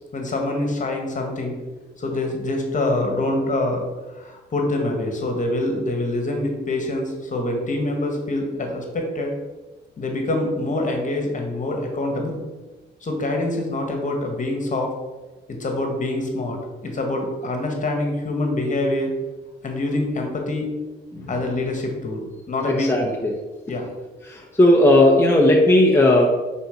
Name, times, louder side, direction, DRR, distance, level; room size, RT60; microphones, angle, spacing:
voice 1, 0.1-1.5 2.0-3.8 4.1-9.3 10.0-12.4 13.0-14.9 15.5-16.6 16.8-19.1 19.6-20.7 21.3-23.1 23.7-23.8, left 2 dB, 40° left, 3 dB, 1.6 m, -25 dB
voice 2, 22.7-23.3 24.3-26.3, left 1 dB, 10° left, -2 dB, 1.0 m, -16 dB
5.7 x 4.2 x 5.7 m, 1.2 s
cardioid pair, 90°, 20 cm